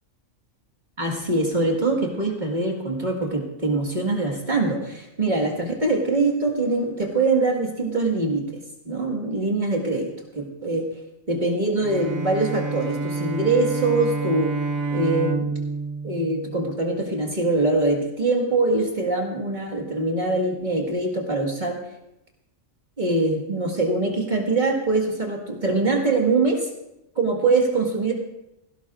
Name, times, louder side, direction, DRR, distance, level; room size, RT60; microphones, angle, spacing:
voice 1, 1.0-8.6 8.9-10.9 11.3-14.5 14.9-15.5 16.0-21.8 23.0-26.7 27.2-28.1, right 2 dB, 35° right, 0 dB, 1.9 m, -23 dB
Bowed string instrument, 11.8-17.2, right 4 dB, 85° right, 1.3 m, -29 dB
17.5 x 16.5 x 2.5 m, 0.88 s
omnidirectional pair, 1.4 m